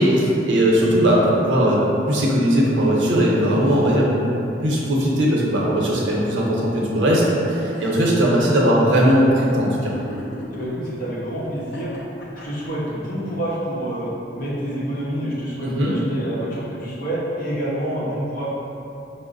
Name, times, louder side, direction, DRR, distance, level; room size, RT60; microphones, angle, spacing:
voice 1, 0.0-4.1 4.6-7.2 7.5-9.9 15.6-16.0, equal, 85° right, -4 dB, 0.7 m, -18 dB
sound 1, 7.5-8.2 9.7-10.7 11.6-12.9, left 1 dB, 75° left, 0.5 m, -38 dB
voice 2, 10.5-11.9 12.4-18.5, right 1 dB, 45° left, -9 dB, 0.9 m, -27 dB
5.2 x 2.1 x 2.5 m, 2.8 s
head